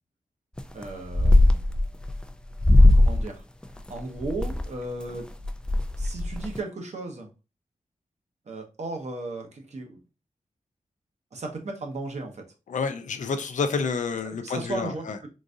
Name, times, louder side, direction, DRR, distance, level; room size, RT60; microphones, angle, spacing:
sound 1, 0.6-0.8 1.1-2.2 2.6-3.2 3.6-4.6 5.1-5.2 5.4-6.6, left 1 dB, 5° left, 0.3 m, -18 dB
voice 1, 0.7-1.6 2.9-3.4 3.7-5.3 6.0-7.3 8.5-10.0 11.3-12.4 14.2-15.3, right 2 dB, 60° right, 0.9 m, -35 dB
voice 2, 12.7-15.2, left 5 dB, 70° left, 0.5 m, -29 dB
3.9 x 2.6 x 2.4 m
wide cardioid pair, 90°, 13 cm